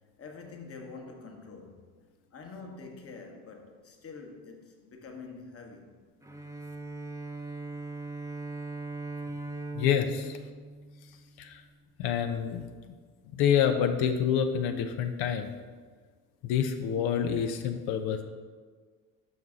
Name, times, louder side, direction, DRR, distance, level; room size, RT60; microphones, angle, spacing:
voice 1, 0.2-1.8 2.3-5.9, left 4 dB, 30° left, 1.1 m, -46 dB
Bowed string instrument, 6.2-11.6, right 2 dB, 5° right, 0.8 m, -40 dB
voice 2, 9.8-10.4 11.4-11.6 12.0-12.7 13.3-15.5 16.4-18.2, left 8 dB, 60° left, 0.6 m, -27 dB
5.7 x 5.4 x 3.7 m
hypercardioid pair, 60°, 43 cm